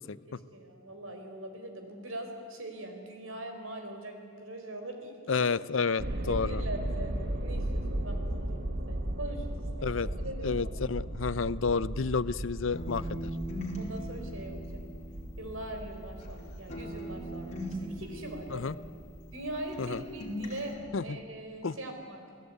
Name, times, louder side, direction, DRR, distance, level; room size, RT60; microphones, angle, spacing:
voice 1, 0.3-5.5 6.3-7.1 7.4-9.9 10.2-10.5 13.7-14.8 15.4-18.7 19.3-22.2, right 1 dB, 85° right, 5 dB, 4.8 m, -42 dB
voice 2, 5.3-6.6 9.8-10.1 10.4-13.3 18.5-18.7 19.8-20.0 20.9-21.2 21.6-21.8, left 5 dB, 70° left, 18 dB, 0.6 m, -30 dB
sound 1, 6.0-21.1, right 1 dB, 55° right, 1.8 m, -37 dB
sound 2, 12.7-16.4 16.7-19.5 19.7-20.7, equal, 35° left, 4.5 m, -40 dB
28.0 x 18.0 x 9.5 m, 2.5 s
head